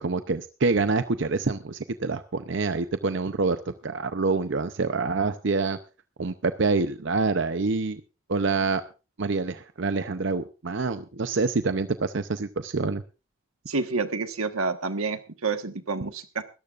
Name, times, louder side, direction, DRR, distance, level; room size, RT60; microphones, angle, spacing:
voice 1, 0.0-5.8 6.2-8.0 8.3-8.8 9.2-13.0, right 3 dB, 60° right, 10 dB, 0.6 m, -26 dB
voice 2, 13.7-16.4, right 4 dB, 90° right, 9 dB, 1.4 m, -29 dB
22.0 x 13.5 x 2.5 m, 0.31 s
head